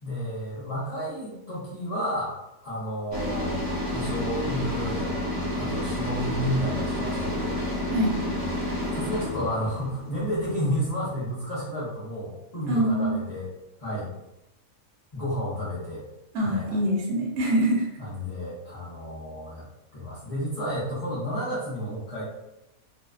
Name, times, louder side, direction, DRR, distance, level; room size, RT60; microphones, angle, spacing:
voice 1, 0.0-2.3 2.6-3.6 3.9-5.3 5.6-7.6 8.9-13.5 13.8-14.1 15.1-16.0 16.5-16.8 18.0-19.6 19.9-22.2, equal, 45° left, -9 dB, 0.4 m, -31 dB
sound 1, 3.1-11.1, left 1 dB, 15° right, 0.8 m, -30 dB
voice 2, 12.7-13.2 16.3-17.9, equal, 60° right, -3 dB, 1.0 m, -24 dB
2.6 x 2.2 x 2.3 m, 0.89 s
omnidirectional pair, 1.5 m